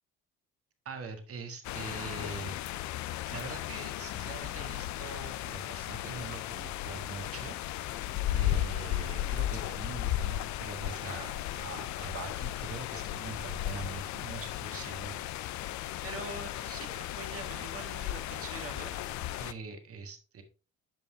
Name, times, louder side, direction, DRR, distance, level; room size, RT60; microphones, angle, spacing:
voice 1, 0.8-2.6 3.3-7.8 8.3-15.7 16.0-20.4, right 4 dB, 45° right, 7 dB, 1.6 m, -43 dB
sound 1, 1.6-19.5, left 13 dB, 60° left, 0.6 m, -35 dB
11.0 x 5.4 x 2.9 m, 0.34 s
hypercardioid pair, 60°, 32 cm